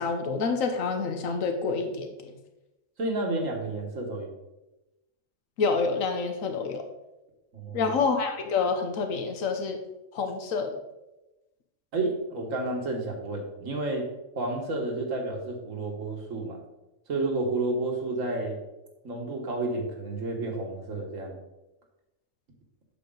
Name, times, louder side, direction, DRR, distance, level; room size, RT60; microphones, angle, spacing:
voice 1, 0.0-2.3 5.6-6.8 7.7-9.8 10.1-10.8, left 4 dB, 85° left, 6 dB, 1.3 m, -28 dB
voice 2, 3.0-4.3 7.5-7.9 11.9-14.1 14.4-16.6 17.1-18.6 19.0-21.4, right 2 dB, 75° right, 1 dB, 1.9 m, -31 dB
8.2 x 6.8 x 3.9 m, 0.97 s
omnidirectional pair, 1.3 m